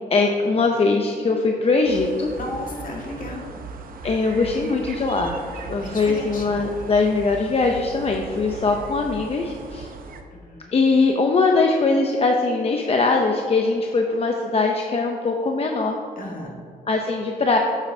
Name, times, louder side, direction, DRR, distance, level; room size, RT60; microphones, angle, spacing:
voice 1, 0.1-2.3 4.0-5.4 5.7-9.9 10.7-16.0 16.9-17.6, left 3 dB, 40° left, 2 dB, 0.6 m, -21 dB
sound 1, 1.9-10.2, right 4 dB, 60° right, 0.7 m, -38 dB
voice 2, 2.4-3.6 5.8-6.4 10.4-10.7 16.2-16.5, left 2 dB, 55° left, -1 dB, 1.7 m, -34 dB
8.5 x 7.4 x 2.7 m, 2.3 s
cardioid pair, 90°, 16 cm